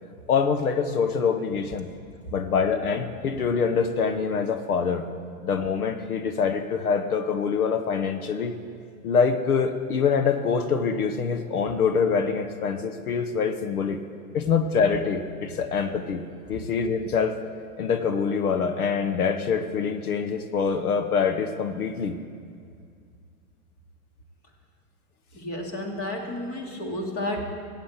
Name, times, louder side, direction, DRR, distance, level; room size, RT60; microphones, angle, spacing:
voice 1, 0.3-1.9 2.3-5.1 5.4-8.6 9.0-14.0 14.3-16.2 16.5-17.4 17.8-22.2 26.7-26.8, left 6 dB, 90° left, 8 dB, 1.2 m, -25 dB
voice 2, 25.3-27.4, left 1 dB, 35° left, 1 dB, 2.7 m, -31 dB
14.5 x 8.7 x 8.1 m, 2.3 s
hypercardioid pair, 120°, 43 cm